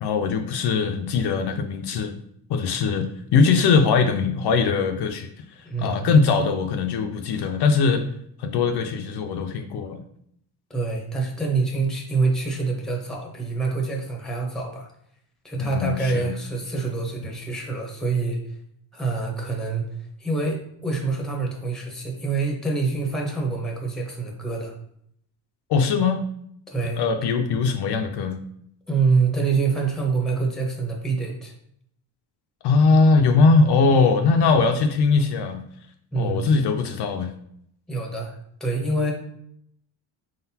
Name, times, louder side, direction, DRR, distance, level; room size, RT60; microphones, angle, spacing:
voice 1, 0.0-2.1 2.5-3.1 3.3-5.3 5.8-8.0 8.4-10.0 15.6-16.3 25.7-26.2 27.0-28.4 32.6-35.6 36.1-37.3, left 4 dB, 60° left, 5 dB, 0.5 m, -20 dB
voice 2, 5.6-6.1 10.7-14.9 15.4-18.4 18.9-19.8 20.2-24.7 26.7-27.0 28.9-31.5 36.1-36.5 37.9-39.1, right 4 dB, ahead, 0 dB, 0.8 m, -26 dB
4.8 x 3.9 x 2.8 m, 0.70 s
cardioid pair, 150°, 45 cm